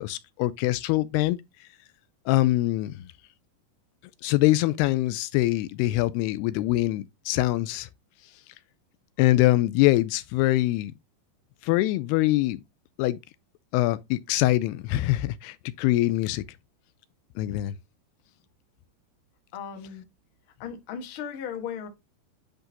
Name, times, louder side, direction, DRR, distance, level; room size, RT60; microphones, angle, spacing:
voice 1, 0.0-1.4 2.3-3.1 4.2-7.9 9.2-10.9 11.6-12.6 13.0-13.2 13.7-16.4 17.4-17.7, left 17 dB, 85° left, 2.5 m, -24 dB
voice 2, 19.5-20.0 20.6-21.9, left 7 dB, 60° left, 1.3 m, -36 dB
10.0 x 3.9 x 2.8 m
omnidirectional pair, 4.8 m